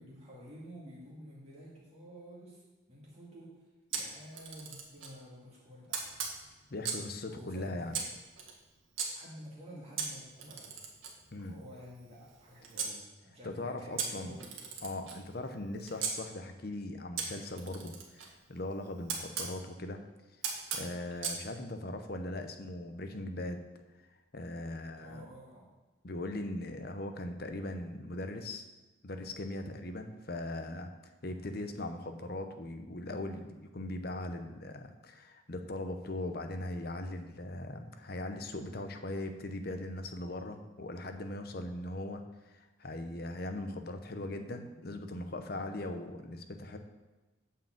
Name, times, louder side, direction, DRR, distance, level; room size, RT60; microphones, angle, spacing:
voice 1, 0.0-6.4 7.2-8.1 9.1-10.8 11.4-14.6 24.9-25.7 31.2-31.6, equal, 30° right, -6 dB, 2.2 m, -51 dB
Camera, 3.9-5.2 5.9-7.1 7.9-9.1 10.0-12.9 14.0-16.1 17.2-19.5 20.4-21.4, right 6 dB, 85° right, 1.7 m, -39 dB
voice 2, 6.7-7.9 11.3-11.6 13.4-14.4 14.8-20.0 20.7-23.6 24.3-25.3 26.0-28.7 29.0-30.9 31.2-46.8, left 1 dB, 50° left, 6 dB, 0.8 m, -39 dB
9.1 x 4.8 x 7.5 m, 1.2 s
head